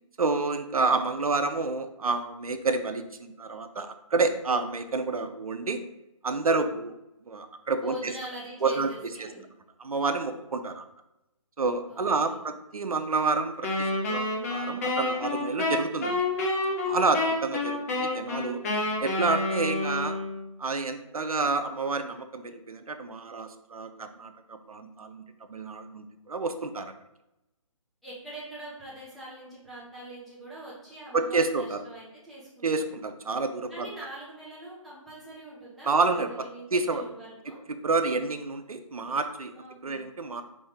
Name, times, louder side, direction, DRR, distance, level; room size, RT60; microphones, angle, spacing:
voice 1, 0.2-5.8 6.2-6.9 7.3-8.1 8.6-8.9 9.2-9.3 9.8-10.8 11.6-16.2 16.7-18.6 19.0-20.2 20.6-25.2 25.5-26.9 31.1-31.8 32.6-33.9 35.9-36.3 36.7-37.0 37.8-39.5 39.8-40.4, right 3 dB, 85° right, 8 dB, 0.6 m, -29 dB
voice 2, 7.8-9.4 11.9-12.4 28.0-32.9 33.7-37.6 39.5-40.0, right 1 dB, ahead, -9 dB, 0.9 m, -43 dB
Wind instrument woodwind instrument, 13.6-20.5, left 2 dB, 25° left, 0.8 m, -29 dB
5.0 x 2.6 x 3.7 m, 0.91 s
figure-of-eight pair, 155°, 18 cm